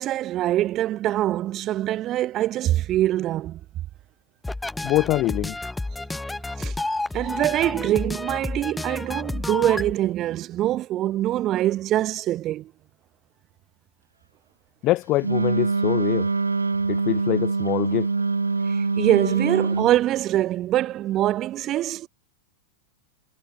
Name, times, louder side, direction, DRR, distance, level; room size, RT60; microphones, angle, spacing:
voice 1, 0.0-3.6 6.6-6.8 7.1-12.7 18.7-22.1, right 14 dB, 35° right, 1.8 m, -24 dB
sound 1, 4.4-9.9, left 2 dB, 5° left, 2.4 m, -30 dB
voice 2, 4.8-5.6 14.8-16.3 16.9-18.1, left 18 dB, 35° left, 2.3 m, -24 dB
Wind instrument woodwind instrument, 15.2-19.9, right 3 dB, 80° right, 1.1 m, -24 dB
figure-of-eight pair, 90°, 0 cm